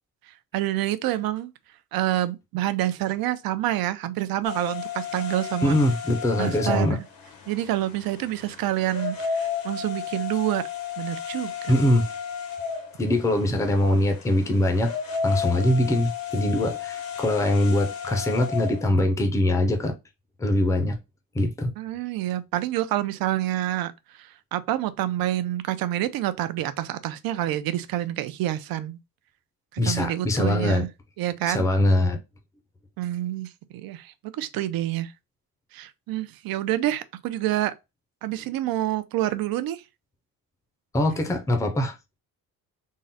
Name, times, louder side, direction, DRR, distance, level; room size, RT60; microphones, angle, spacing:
voice 1, 0.5-1.5 1.9-5.8 6.4-7.0 7.5-10.6 11.0-11.7 21.8-23.9 24.2-29.0 29.7-30.9 31.2-31.7 33.0-35.1 35.7-37.7 38.2-39.8, right 14 dB, 85° right, 0.5 m, -27 dB
sound 1, 4.4-18.9, left 7 dB, 80° left, 1.2 m, -34 dB
voice 2, 5.6-7.0 11.7-12.0 13.0-14.9 15.2-19.9 20.4-21.0 21.3-21.7 29.8-30.9 31.5-32.2 40.9-42.0, left 1 dB, 10° left, 0.4 m, -22 dB
3.7 x 2.1 x 4.0 m
cardioid pair, 180°, 34 cm